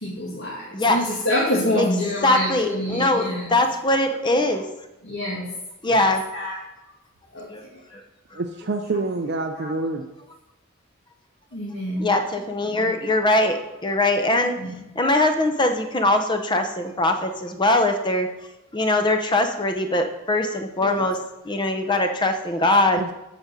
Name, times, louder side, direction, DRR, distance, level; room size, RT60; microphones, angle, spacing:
voice 1, 0.0-3.5 5.0-5.5 5.8-6.1 6.3-6.6 7.3-8.0 8.3-8.4 9.5-9.7 11.5-12.1 12.6-12.9 14.6-14.7 20.8-21.0, left 1 dB, 65° left, -7 dB, 2.3 m, -27 dB
voice 2, 2.2-4.7 5.8-6.2 7.5-7.6 8.3-8.4 12.0-14.6 15.0-18.3 18.7-21.2 21.4-23.0, left 2 dB, 25° left, 6 dB, 0.7 m, -21 dB
voice 3, 8.3-10.0 23.0-23.1, right 3 dB, 55° right, 5 dB, 0.5 m, -27 dB
7.9 x 5.1 x 6.1 m, 0.97 s
head